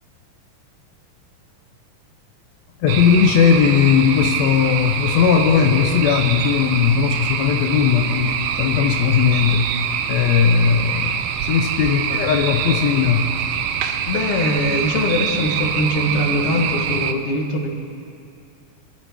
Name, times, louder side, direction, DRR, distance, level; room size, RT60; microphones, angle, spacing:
voice 1, 2.8-9.7 10.1-13.2, left 7 dB, 85° left, 5 dB, 1.5 m, -17 dB
sound 1, 2.9-17.1, right 8 dB, 85° right, 1.7 m, -25 dB
voice 2, 14.1-17.7, left 1 dB, 55° left, 2 dB, 1.8 m, -22 dB
24.5 x 11.0 x 3.5 m, 2.5 s
omnidirectional pair, 3.9 m